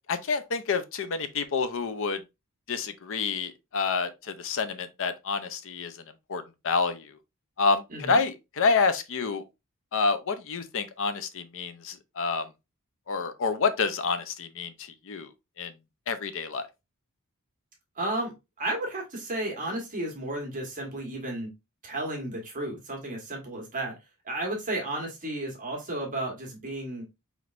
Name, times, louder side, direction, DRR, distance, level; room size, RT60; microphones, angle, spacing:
voice 1, 0.1-2.2 2.7-6.0 6.3-7.2 7.6-9.4 9.9-12.5 13.1-15.3 15.6-15.7 16.1-16.7, left 4 dB, 60° left, 0.6 m, -28 dB
voice 2, 18.0-18.3 18.6-21.5 21.8-24.0 24.2-27.0, right 1 dB, 35° right, 1.3 m, -33 dB
5.0 x 3.2 x 2.5 m
head